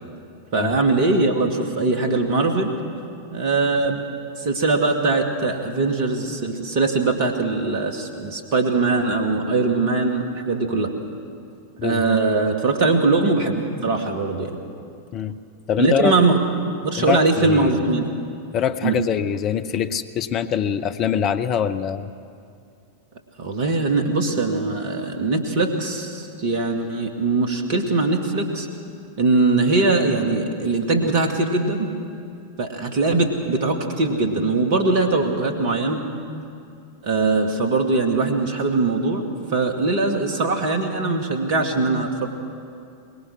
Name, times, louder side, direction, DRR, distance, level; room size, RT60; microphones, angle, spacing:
voice 1, 0.5-2.7 3.3-4.0 4.4-10.9 11.8-14.6 15.8-16.4 16.8-18.1 18.8-19.0 23.4-28.7 29.2-31.9 32.6-36.0 37.0-42.3, right 3 dB, 45° right, 5 dB, 2.5 m, -21 dB
voice 2, 11.8-12.1 15.1-15.4 15.7-16.2 17.0-17.7 18.5-22.1, left 8 dB, 35° left, 10 dB, 0.8 m, -23 dB
24.0 x 21.0 x 6.2 m, 2.4 s
figure-of-eight pair, 90°, 0 cm